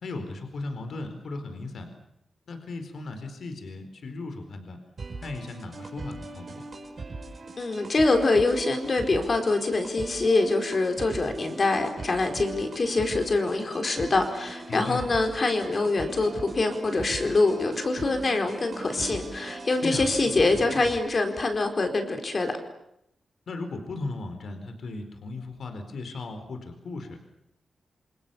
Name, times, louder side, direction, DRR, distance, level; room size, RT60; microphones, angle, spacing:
voice 1, 0.0-1.9 2.5-4.8 5.2-6.7 14.7-15.0 19.8-20.1 23.5-27.2, left 3 dB, 60° left, 6 dB, 4.3 m, -36 dB
sound 1, 5.0-21.0, right 3 dB, 40° right, 5.7 m, -40 dB
voice 2, 7.6-22.5, left 3 dB, 35° left, 5 dB, 4.5 m, -25 dB
28.0 x 27.5 x 7.1 m, 0.79 s
wide cardioid pair, 170°, 0 cm